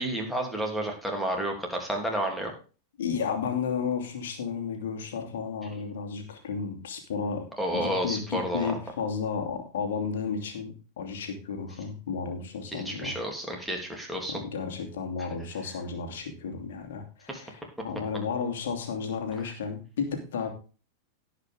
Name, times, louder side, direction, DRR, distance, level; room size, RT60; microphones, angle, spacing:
voice 1, 0.0-2.5 7.6-8.8 12.7-14.4 17.3-17.4, right 1 dB, ahead, 1 dB, 3.2 m, -31 dB
voice 2, 3.0-7.5 7.8-13.2 14.3-20.5, left 6 dB, 60° left, 4 dB, 2.8 m, -33 dB
17.5 x 5.9 x 3.8 m, 0.35 s
figure-of-eight pair, 90°, 0 cm